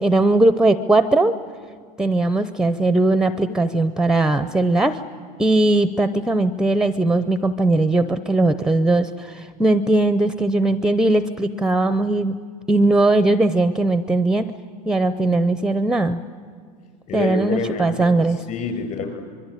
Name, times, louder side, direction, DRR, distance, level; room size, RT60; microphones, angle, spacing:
voice 1, 0.0-1.3 2.0-5.0 5.4-12.3 12.7-14.5 14.9-16.2 17.1-18.4, right 2 dB, 5° right, 13 dB, 0.6 m, -19 dB
voice 2, 17.1-18.1 18.5-19.1, left 5 dB, 40° left, 6 dB, 6.2 m, -27 dB
25.5 x 22.5 x 9.9 m, 2.1 s
supercardioid pair, 135°, 19 cm